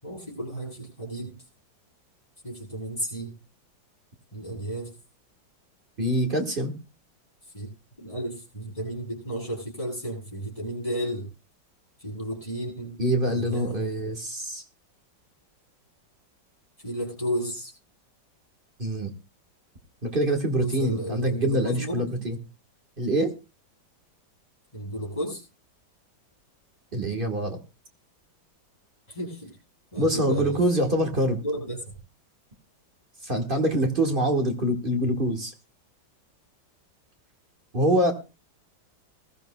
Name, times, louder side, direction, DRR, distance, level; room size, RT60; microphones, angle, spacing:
voice 1, 0.0-1.3 2.4-3.3 4.3-4.9 7.5-7.7 8.0-11.2 12.0-13.0 13.3-13.8 16.8-17.7 20.6-22.2 24.7-25.4 29.1-29.5 29.9-30.6 31.4-31.8, right 1 dB, 15° left, -4 dB, 7.8 m, -33 dB
voice 2, 6.0-6.7 13.0-14.6 18.8-19.1 20.0-22.4 23.0-23.3 26.9-27.6 30.0-31.4 33.2-35.5 37.7-38.1, right 1 dB, 30° right, 4 dB, 1.4 m, -25 dB
21.0 x 13.5 x 2.2 m, 0.29 s
omnidirectional pair, 2.1 m